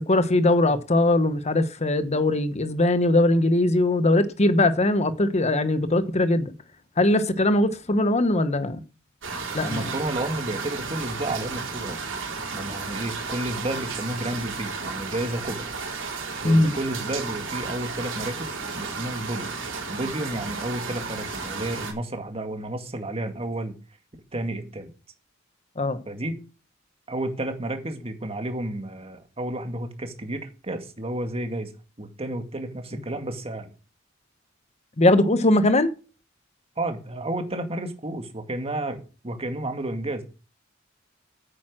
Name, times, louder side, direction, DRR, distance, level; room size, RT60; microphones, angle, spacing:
voice 1, 0.0-6.5 7.0-8.8 9.5-9.9 16.4-16.7 25.8-26.0 35.0-35.9, left 2 dB, 35° left, 1.0 m, -21 dB
sound 1, 9.2-21.9, right 4 dB, 65° right, 3.6 m, -33 dB
voice 2, 9.6-12.0 12.5-15.7 16.4-19.6 19.9-23.8 24.3-24.9 26.1-26.4 27.1-31.7 32.0-33.7 36.8-40.2, right 1 dB, 30° right, 2.1 m, -31 dB
9.3 x 8.9 x 6.2 m
head